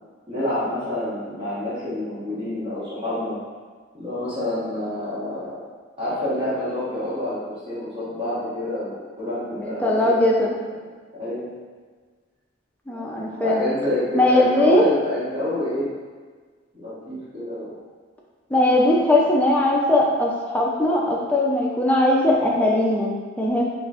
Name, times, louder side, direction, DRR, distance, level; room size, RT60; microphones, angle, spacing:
voice 1, 0.3-3.3 3.9-5.7 6.0-7.4 7.7-10.1 11.2-11.5 13.4-15.9 16.7-17.7, left 1 dB, 30° right, -11 dB, 1.2 m, -28 dB
voice 2, 9.6-10.5 12.9-13.6 14.1-14.8 18.5-23.6, left 1 dB, 10° left, -3 dB, 0.4 m, -19 dB
4.4 x 2.4 x 2.4 m, 1.5 s
head